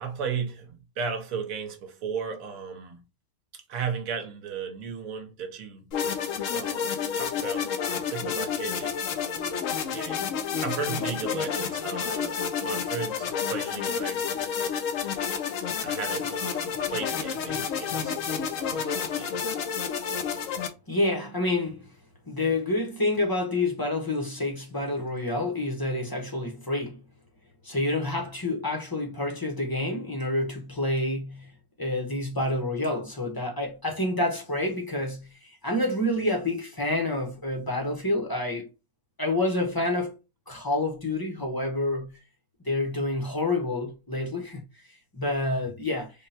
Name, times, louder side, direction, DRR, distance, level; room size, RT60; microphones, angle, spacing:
voice 1, 0.0-3.0 3.5-5.9 6.5-9.6 9.9-10.4 10.6-14.8 15.8-19.4, right 6 dB, 75° right, 1.3 m, -36 dB
sound 1, 5.9-20.7, left 7 dB, 70° left, 1.0 m, -30 dB
voice 2, 20.9-21.9 22.3-27.0 27.6-31.5 31.8-38.7 39.2-40.1 40.5-42.1 42.6-44.6 45.1-46.1, left 2 dB, 20° left, 0.7 m, -28 dB
3.6 x 2.2 x 4.1 m
omnidirectional pair, 1.5 m